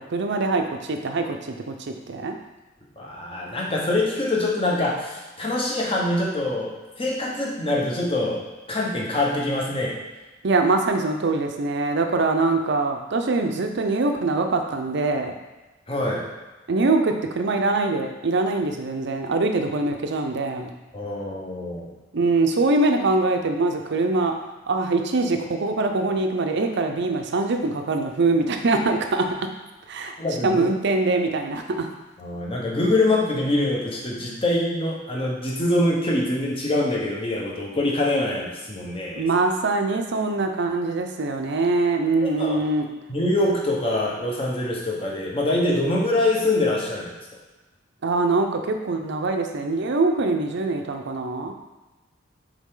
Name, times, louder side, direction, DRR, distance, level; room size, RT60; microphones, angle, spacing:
voice 1, 0.0-2.4 10.4-15.3 16.7-20.7 22.1-24.3 24.7-29.3 29.9-30.1 30.4-31.9 39.1-42.9 48.0-51.5, right 3 dB, 60° right, 5 dB, 0.6 m, -23 dB
voice 2, 3.0-6.7 7.0-10.0 15.9-16.3 20.9-21.9 30.2-30.6 32.2-39.2 42.2-42.6 43.1-47.1, left 2 dB, 30° left, -3 dB, 1.1 m, -24 dB
7.3 x 3.5 x 3.8 m, 1.2 s
head